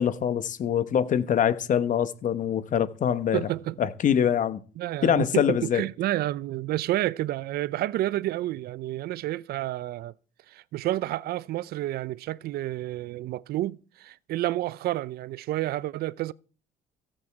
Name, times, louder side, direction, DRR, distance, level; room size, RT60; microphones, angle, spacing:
voice 1, 0.0-3.4 3.8-4.6 5.0-5.8, left 9 dB, 50° left, 1.1 m, -24 dB
voice 2, 3.3-3.8 4.8-10.1 10.5-16.3, right 15 dB, 70° right, 0.5 m, -30 dB
15.5 x 8.8 x 4.7 m
cardioid pair, 110°, 17 cm